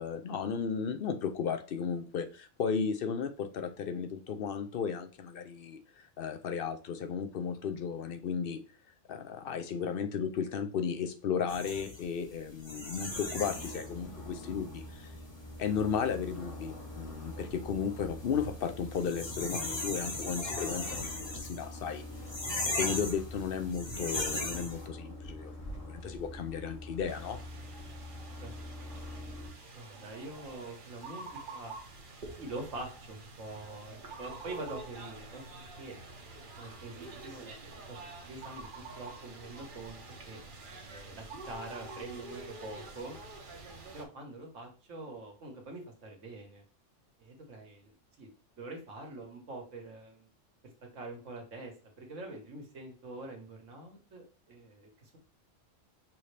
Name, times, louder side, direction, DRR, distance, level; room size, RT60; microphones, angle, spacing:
voice 1, 0.0-5.8 6.2-8.6 9.1-15.1 15.6-22.0 22.7-27.4, left 6 dB, 60° left, 8 dB, 0.7 m, -34 dB
sound 1, 11.5-24.9, left 2 dB, 25° left, 0.9 m, -39 dB
sound 2, 13.1-29.5, left 1 dB, 75° left, 1.8 m, -45 dB
sound 3, 27.1-44.0, right 3 dB, 45° right, 0.9 m, -47 dB
voice 2, 29.7-31.7 32.4-35.4 35.8-35.9 36.6-37.5 37.9-40.0 40.2-40.4 40.9-43.2 43.9-46.6 47.2-48.3 48.6-50.3 50.6-55.2, right 2 dB, 75° right, 2 dB, 1.6 m, -45 dB
5.7 x 2.7 x 3.3 m, 0.37 s
omnidirectional pair, 1.3 m